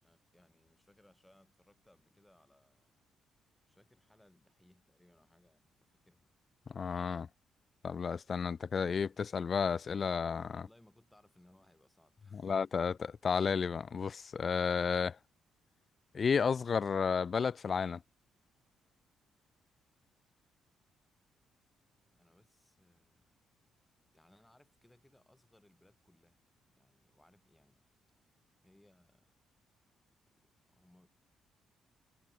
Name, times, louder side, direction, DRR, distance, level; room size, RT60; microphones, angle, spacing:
voice 1, 0.0-2.9 3.7-6.3 10.5-12.8 22.1-23.4 24.1-26.4 26.8-27.9 28.2-29.3 30.3-30.4 30.6-31.1, left 1 dB, 10° left, 7.0 m, -67 dB
voice 2, 6.7-7.3 7.8-10.6 12.3-12.9 13.2-15.2 16.1-18.0, left 6 dB, 45° left, 0.5 m, -32 dB
cardioid pair, 90°, 0 cm